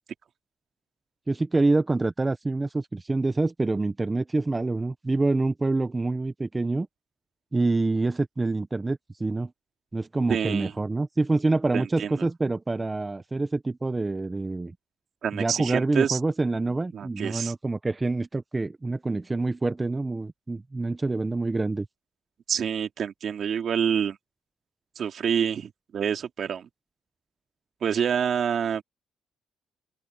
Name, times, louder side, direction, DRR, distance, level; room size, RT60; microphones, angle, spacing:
voice 1, 1.3-6.9 7.5-9.5 9.9-14.7 15.3-21.9, right 2 dB, 20° right, 1.0 m, -26 dB
voice 2, 10.3-10.7 11.7-12.3 15.2-16.2 16.9-17.5 22.5-24.2 24.9-26.7 27.8-28.8, right 8 dB, 60° right, 3.0 m, -27 dB
open air
cardioid pair, 90°, 0 cm